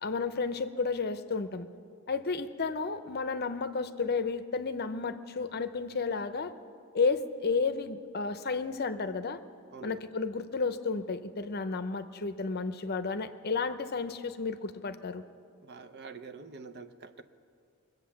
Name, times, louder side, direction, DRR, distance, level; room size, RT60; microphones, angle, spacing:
voice 1, 0.0-1.7 2.1-6.5 6.9-9.4 9.8-15.2, left 4 dB, 45° left, 11 dB, 0.6 m, -32 dB
voice 2, 15.6-17.2, right 5 dB, 50° right, 10 dB, 0.6 m, -46 dB
23.0 x 8.1 x 7.1 m, 2.3 s
head